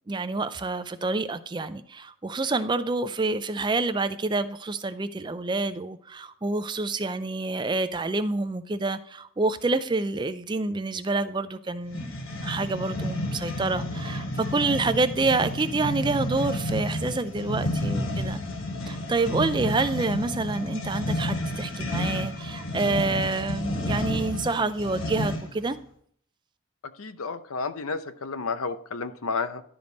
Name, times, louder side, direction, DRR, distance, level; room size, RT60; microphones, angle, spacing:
voice 1, 0.1-12.2 12.4-18.4 18.9-25.8, right 3 dB, 20° right, 12 dB, 0.4 m, -27 dB
sound 1, 11.9-25.6, left 1 dB, 70° left, 1.2 m, -31 dB
voice 2, 27.0-29.6, left 4 dB, 90° left, 11 dB, 0.7 m, -31 dB
11.5 x 5.2 x 4.0 m, 0.62 s
head